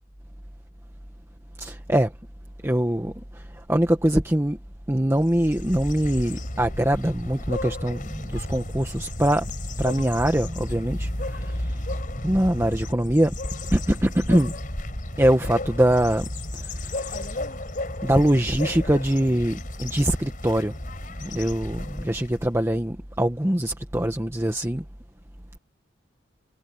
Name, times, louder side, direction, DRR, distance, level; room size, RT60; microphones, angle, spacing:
voice 1, 1.6-2.1 2.6-4.6 4.9-9.5 9.8-11.8 12.2-13.4 13.7-14.5 15.2-16.3 16.5-17.4 18.0-20.7 21.2-24.8, right 1 dB, 15° right, 1.2 m, -23 dB
sound 1, 5.2-22.5, left 1 dB, 45° left, 5.0 m, -33 dB
head